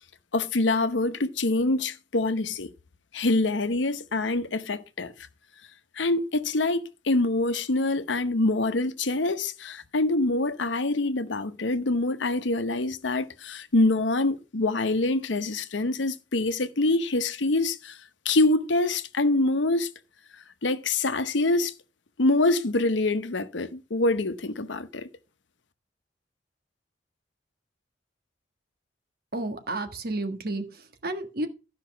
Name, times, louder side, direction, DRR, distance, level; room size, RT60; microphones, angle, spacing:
voice 1, 0.3-2.7 3.1-5.1 6.0-18.0 18.2-19.9 20.4-21.7 22.2-25.1, left 2 dB, 85° left, 0.9 m, -25 dB
voice 2, 29.3-31.5, right 2 dB, 55° right, 1.6 m, -32 dB
13.0 x 5.6 x 5.9 m
head